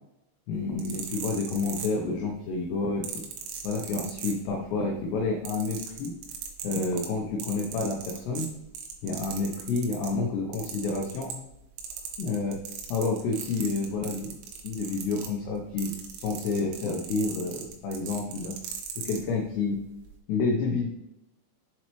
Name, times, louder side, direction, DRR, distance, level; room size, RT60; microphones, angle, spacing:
voice 1, 0.5-3.1 3.6-6.1 6.6-8.5 9.0-11.4 12.2-12.6 12.9-14.3 14.6-18.6 19.0-19.8 20.3-20.9, left 3 dB, 90° left, 1 dB, 2.4 m, -29 dB
sound 1, 0.6-2.3 3.0-4.8 5.1-10.2 10.5-11.5 11.8-19.2 20.0-20.1, right 7 dB, 80° right, 3.3 m, -39 dB
7.7 x 4.1 x 3.0 m, 0.88 s
omnidirectional pair, 5.7 m